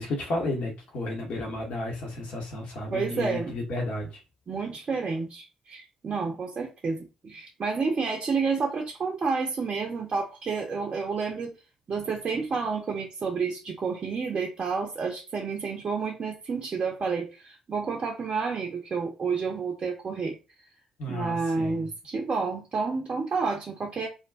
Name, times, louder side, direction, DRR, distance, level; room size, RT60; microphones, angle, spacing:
voice 1, 0.0-4.2 21.0-21.9, left 2 dB, 55° left, 0.9 m, -32 dB
voice 2, 2.9-3.5 4.5-11.5 11.9-20.4 21.1-24.1, right 4 dB, 40° right, 0.5 m, -30 dB
2.4 x 2.2 x 2.4 m
figure-of-eight pair, 40°, 3 cm